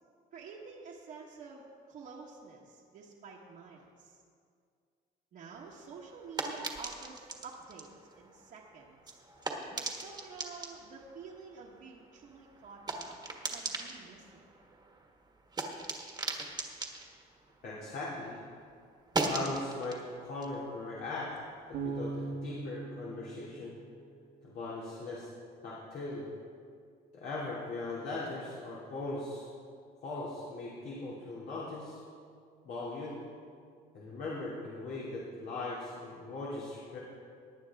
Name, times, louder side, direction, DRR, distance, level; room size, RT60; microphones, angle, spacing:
voice 1, 0.3-4.2 5.3-7.9 8.1-9.2 9.7-13.2 13.5-14.4, right 5 dB, 60° right, -6 dB, 1.5 m, -49 dB
sound 1, 5.5-18.3 18.6-21.8, right 3 dB, 25° right, 1.5 m, -40 dB
voice 2, 17.6-18.4 19.3-21.3 21.8-23.7 24.4-25.3 25.6-26.2 27.1-29.5 30.0-32.0 32.6-33.2 33.9-37.0, left 2 dB, 65° left, -6 dB, 2.6 m, -39 dB
Bass guitar, 21.7-24.8, right 4 dB, 85° right, 1.7 m, -41 dB
18.5 x 9.0 x 3.6 m, 2.2 s
cardioid pair, 110°, 17 cm